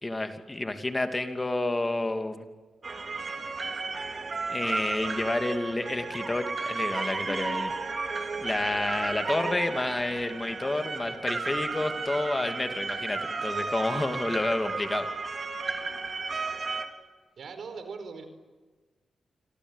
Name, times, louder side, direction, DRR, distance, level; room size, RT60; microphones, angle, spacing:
voice 1, 0.0-2.4 4.5-7.7 8.4-15.1, left 2 dB, 25° left, 7 dB, 2.7 m, -30 dB
sound 1, 2.8-16.9, right 4 dB, 45° right, 3.4 m, -33 dB
voice 2, 17.4-18.2, right 5 dB, 70° right, 9 dB, 4.8 m, -40 dB
27.5 x 24.5 x 8.2 m, 1.3 s
cardioid pair, 70°, 0 cm